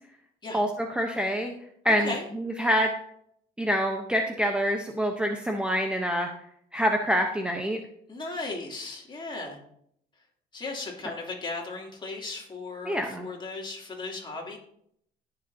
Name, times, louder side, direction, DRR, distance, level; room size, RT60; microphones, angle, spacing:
voice 1, 0.5-1.5 1.8-2.9 3.6-6.3 6.7-7.8 12.8-13.3, equal, 5° right, 3 dB, 0.9 m, -26 dB
voice 2, 1.8-2.3 8.1-9.6 10.5-14.6, left 3 dB, 25° left, -1 dB, 3.0 m, -36 dB
19.5 x 6.9 x 2.8 m, 0.69 s
cardioid pair, 110°, 17 cm